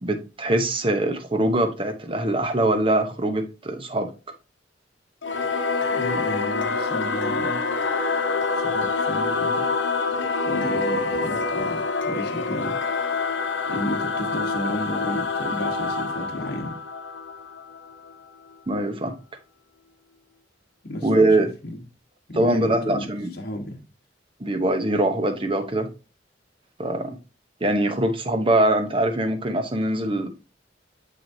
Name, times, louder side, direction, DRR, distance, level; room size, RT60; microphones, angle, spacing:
voice 1, 0.0-4.1 18.7-19.1 21.0-21.5 22.3-23.3 24.4-25.9 26.8-27.2 27.6-30.3, right 1 dB, 30° right, 0.9 m, -22 dB
Singing / Musical instrument, 5.2-18.1, left 4 dB, 75° left, 0.9 m, -26 dB
voice 2, 5.9-7.6 8.5-9.7 10.4-13.3 13.6-16.8 20.8-21.8 22.3-23.1 23.3-23.8, left 1 dB, 55° left, 1.3 m, -33 dB
6.8 x 6.2 x 2.7 m
head